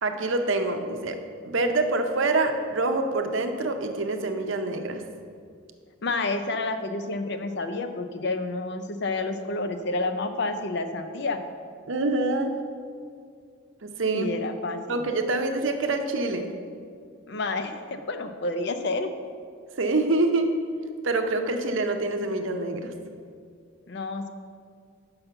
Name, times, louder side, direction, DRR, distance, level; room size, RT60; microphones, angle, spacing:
voice 1, 0.0-1.2 1.4-5.0 11.9-12.5 13.8-14.3 14.9-16.5 19.8-20.5 21.0-22.9, right 2 dB, 65° right, 5 dB, 0.7 m, -26 dB
voice 2, 6.0-11.4 14.1-15.0 17.3-19.1 23.9-24.3, left 2 dB, 50° left, 8 dB, 0.5 m, -29 dB
5.8 x 5.6 x 6.8 m, 2.2 s
head